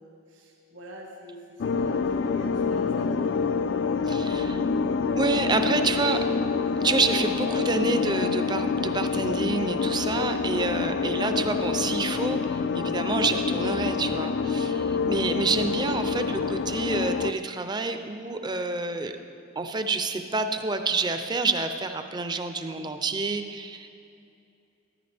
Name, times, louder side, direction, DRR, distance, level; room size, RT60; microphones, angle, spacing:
voice 1, 0.0-3.8 4.2-5.1 5.6-5.9 6.2-6.3, right 1 dB, 80° right, -2 dB, 1.7 m, -45 dB
sound 1, 1.6-17.3, left 5 dB, 75° left, 0.3 m, -27 dB
voice 2, 4.1-4.6 5.1-6.2 6.8-19.1 19.6-23.9, right 3 dB, 25° right, 7 dB, 0.5 m, -28 dB
13.5 x 9.9 x 3.4 m, 2.6 s
head